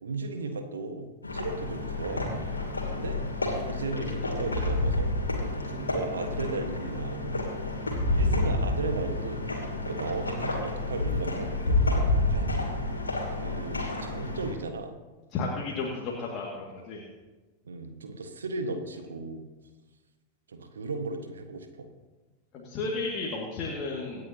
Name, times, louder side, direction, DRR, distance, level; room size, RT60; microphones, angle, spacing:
voice 1, 0.0-2.2 2.9-3.2 3.7-5.1 5.5-7.4 8.1-9.4 9.8-12.6 13.3-14.9 17.6-19.4 20.5-21.9, right 3 dB, 70° right, 6 dB, 1.5 m, -36 dB
sound 1, 1.2-14.5, left 2 dB, 80° left, 2.5 m, -29 dB
voice 2, 15.3-17.0 22.5-24.2, left 3 dB, 35° left, -2 dB, 2.2 m, -33 dB
25.5 x 9.6 x 2.9 m, 1.2 s
figure-of-eight pair, 90°, 0 cm